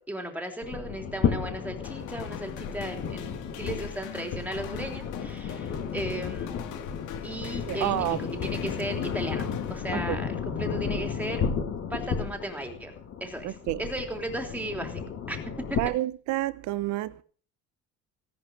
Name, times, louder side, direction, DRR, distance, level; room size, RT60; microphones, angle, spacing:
voice 1, 0.1-6.7 7.2-8.1 8.4-11.4 11.9-12.9 13.2-13.5 13.8-15.4 15.7-15.8, right 1 dB, 5° right, 3.4 m, -36 dB
sound 1, 0.6-15.8, left 7 dB, 55° left, 3.7 m, -33 dB
sound 2, 1.8-10.4, left 10 dB, 85° left, 2.5 m, -43 dB
voice 2, 7.7-8.2 9.9-10.2 13.4-13.8 15.8-17.2, right 16 dB, 75° right, 1.2 m, -29 dB
17.5 x 11.0 x 6.4 m
cardioid pair, 155°, 29 cm